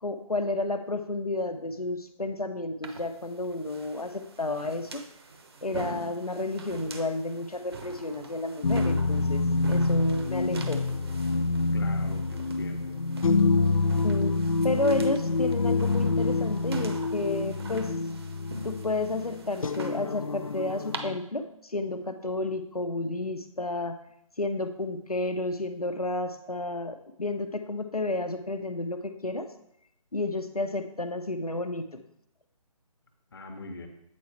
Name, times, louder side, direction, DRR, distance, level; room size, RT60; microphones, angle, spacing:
voice 1, 0.0-5.0 5.6-10.8 14.0-14.3 14.6-17.9 18.6-24.0 24.4-29.5 30.1-32.0, left 2 dB, 80° left, 7 dB, 0.9 m, -31 dB
sound 1, 2.8-21.0, right 3 dB, 45° right, 0.9 m, -44 dB
sound 2, 8.6-21.2, left 3 dB, 65° left, 0.5 m, -27 dB
voice 2, 11.7-13.0 33.3-33.9, left 3 dB, 40° left, 5 dB, 1.0 m, -42 dB
8.4 x 4.6 x 4.4 m, 0.75 s
figure-of-eight pair, 145°, 19 cm